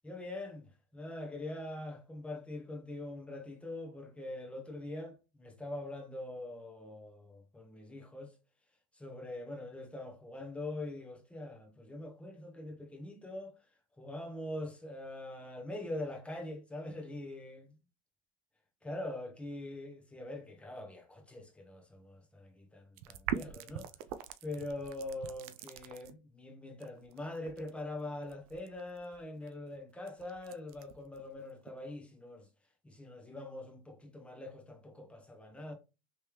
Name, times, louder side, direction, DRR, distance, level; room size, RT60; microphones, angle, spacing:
voice 1, 0.0-8.3 8.9-13.5 14.0-17.8 18.8-23.9 24.4-32.5 32.8-35.7, left 1 dB, 5° left, 1.1 m, -43 dB
sound 1, 23.0-26.1 26.8-31.7, right 10 dB, 75° right, 0.5 m, -43 dB
3.3 x 3.2 x 3.0 m
supercardioid pair, 110°, 19 cm